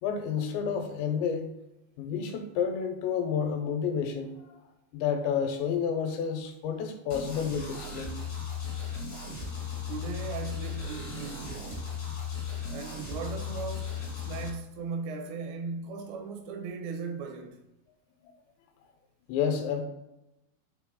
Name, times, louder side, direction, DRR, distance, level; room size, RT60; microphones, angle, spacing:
voice 1, 0.0-1.5 2.0-4.6 4.9-8.1 19.3-19.8, left 7 dB, 85° left, 3.1 m, -30 dB
sound 1, 7.1-14.5, left 6 dB, 55° left, 0.8 m, -36 dB
voice 2, 9.9-11.8 12.7-17.6, right 5 dB, 80° right, 3.0 m, -38 dB
8.1 x 3.4 x 3.7 m
omnidirectional pair, 5.0 m